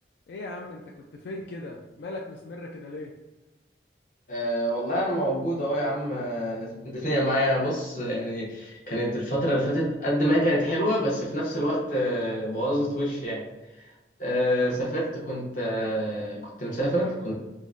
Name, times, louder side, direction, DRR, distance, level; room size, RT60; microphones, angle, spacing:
voice 1, 0.3-3.1 14.4-14.7, left 2 dB, 80° left, 0 dB, 0.3 m, -39 dB
voice 2, 4.3-13.4 14.2-17.3, equal, 45° left, -5 dB, 0.8 m, -26 dB
3.8 x 2.1 x 2.4 m, 1.1 s
head